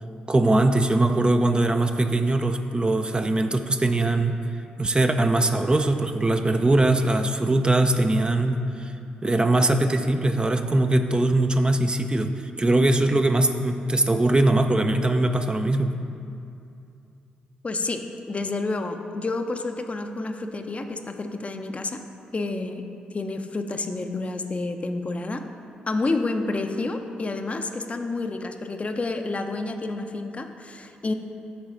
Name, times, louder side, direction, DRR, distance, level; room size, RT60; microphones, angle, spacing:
voice 1, 0.3-4.4 4.8-8.9 9.2-15.9, right 2 dB, 25° right, 6 dB, 0.5 m, -21 dB
voice 2, 17.6-22.0 22.3-22.8 23.1-25.4 25.9-31.1, left 3 dB, 35° left, 6 dB, 0.6 m, -29 dB
8.5 x 4.0 x 6.1 m, 2.6 s
hypercardioid pair, 45°, 4 cm